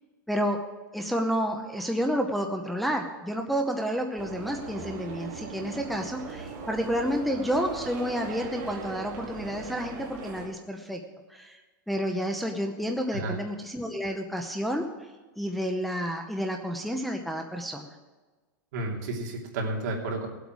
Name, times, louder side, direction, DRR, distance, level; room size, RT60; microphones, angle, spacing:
voice 1, 0.3-0.6 0.9-11.0 11.3-11.6 11.9-14.9 15.4-17.9, equal, ahead, 2 dB, 0.7 m, -30 dB
sound 1, 4.2-10.5, right 5 dB, 45° right, 2.4 m, -39 dB
voice 2, 13.1-13.4 18.7-20.3, right 2 dB, 65° right, 0 dB, 2.8 m, -31 dB
18.5 x 8.1 x 4.8 m, 1.3 s
supercardioid pair, 165°, 10 cm